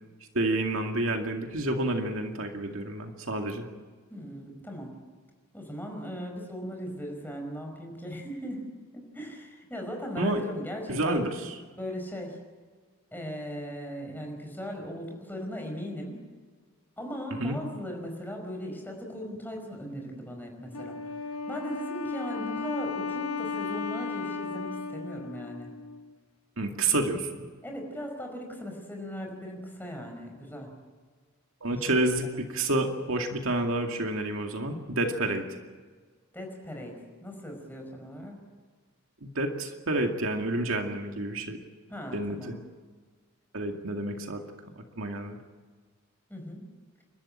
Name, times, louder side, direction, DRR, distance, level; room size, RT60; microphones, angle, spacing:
voice 1, 0.3-3.7 10.2-10.4 10.9-11.6 17.4-17.6 26.6-27.3 31.6-35.4 39.2-41.6 42.1-42.5 43.5-44.4 45.0-45.4, right 2 dB, 65° right, 3 dB, 2.3 m, -29 dB
voice 2, 4.1-4.9 5.5-8.6 8.9-11.3 11.7-12.4 13.1-16.2 17.0-25.7 27.6-30.7 31.7-32.1 35.3-35.4 36.3-38.4 41.9-42.6 46.3-46.6, equal, 10° left, 2 dB, 5.0 m, -38 dB
Wind instrument woodwind instrument, 20.7-26.1, left 4 dB, 80° left, 1.2 m, -35 dB
29.0 x 13.0 x 8.8 m, 1.5 s
head